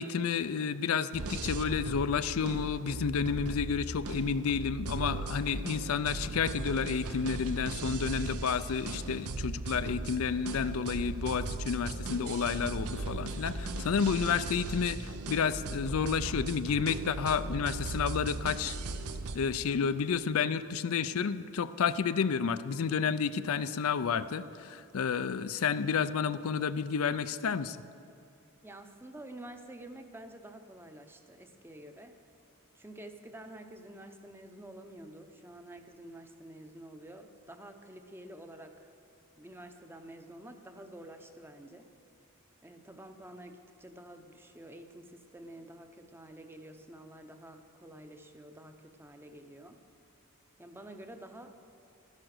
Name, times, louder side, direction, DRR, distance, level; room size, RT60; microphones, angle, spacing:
voice 1, 0.0-18.8 19.3-27.8, left 6 dB, 75° left, 13 dB, 0.4 m, -31 dB
sound 1, 1.1-19.4, right 2 dB, 85° right, 0.8 m, -38 dB
voice 2, 28.6-32.2 32.7-38.9 39.4-41.9 42.6-49.8 50.6-51.6, right 1 dB, 10° right, 7 dB, 0.7 m, -49 dB
12.0 x 10.5 x 6.5 m, 2.5 s
head